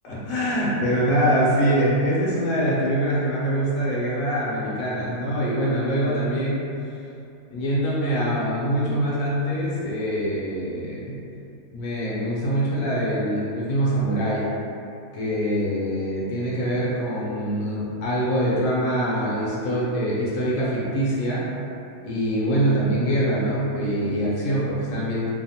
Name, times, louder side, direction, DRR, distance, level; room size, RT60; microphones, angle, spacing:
voice 1, 0.0-6.6 7.5-11.2 11.7-14.5 15.1-21.5 22.0-25.3, right 1 dB, 70° left, -7 dB, 0.9 m, -24 dB
2.8 x 2.0 x 2.7 m, 2.7 s
omnidirectional pair, 1.8 m